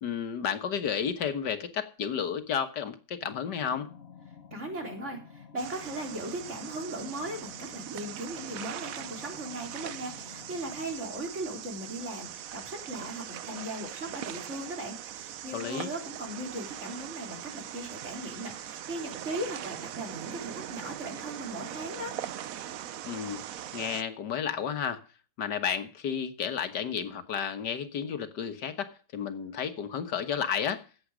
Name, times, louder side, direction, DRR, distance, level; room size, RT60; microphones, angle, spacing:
voice 1, 0.0-3.9 15.5-15.9 23.0-23.4 23.7-25.0 25.4-30.8, left 7 dB, 80° left, 10 dB, 1.9 m, -32 dB
sound 1, 3.2-10.9, left 6 dB, 40° left, 1.3 m, -51 dB
voice 2, 4.5-22.2, right 1 dB, 45° right, 2 dB, 4.2 m, -38 dB
sound 2, 5.6-24.0, right 10 dB, 60° right, 1.0 m, -41 dB
14.5 x 9.4 x 5.0 m, 0.38 s
omnidirectional pair, 1.8 m